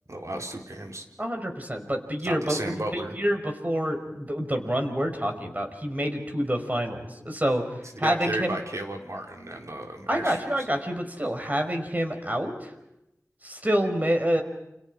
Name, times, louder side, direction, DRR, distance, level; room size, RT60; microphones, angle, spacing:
voice 1, 0.1-1.0 2.2-3.2 7.9-10.4, right 1 dB, 60° right, 2 dB, 4.3 m, -34 dB
voice 2, 1.2-2.6 2.9-7.6 8.0-8.6 10.1-12.7 13.4-14.4, equal, 30° right, 4 dB, 5.1 m, -27 dB
29.5 x 28.0 x 4.9 m, 0.86 s
wide cardioid pair, 40°, 6 cm